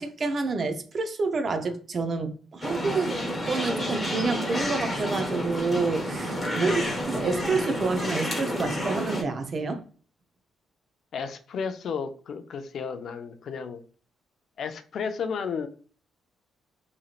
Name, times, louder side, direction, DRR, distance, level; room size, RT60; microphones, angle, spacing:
voice 1, 0.0-3.2 3.5-6.8 7.1-9.8, right 3 dB, 45° right, 0.5 m, -28 dB
sound 1, 2.6-9.2, equal, 15° left, 1.0 m, -30 dB
voice 2, 6.6-7.0 11.1-13.8 14.6-15.7, left 6 dB, 60° left, 0.4 m, -33 dB
3.0 x 2.8 x 2.4 m
cardioid pair, 90°, 0 cm